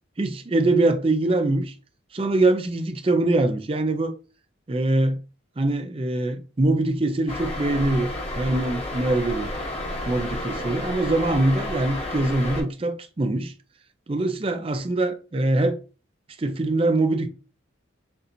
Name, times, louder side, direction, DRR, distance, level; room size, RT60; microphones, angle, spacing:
voice 1, 0.2-1.7 2.1-4.2 4.7-5.2 5.6-9.5 10.1-13.5 14.1-15.8 16.4-17.3, right 2 dB, 30° right, 0.4 m, -23 dB
sound 1, 7.3-12.6, left 1 dB, 30° left, 1.0 m, -31 dB
6.6 x 2.8 x 2.6 m
head